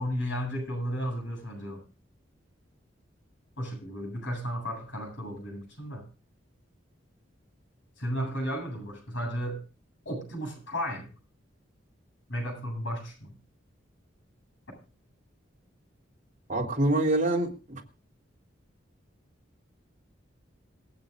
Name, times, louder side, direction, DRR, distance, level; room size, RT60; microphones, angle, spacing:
voice 1, 0.0-1.8 3.6-6.0 8.0-9.6 10.0-11.1 12.3-13.3, equal, 75° left, 2 dB, 7.9 m, -34 dB
voice 2, 16.5-17.8, right 1 dB, 45° right, -1 dB, 3.7 m, -26 dB
27.0 x 9.4 x 2.5 m, 0.34 s
head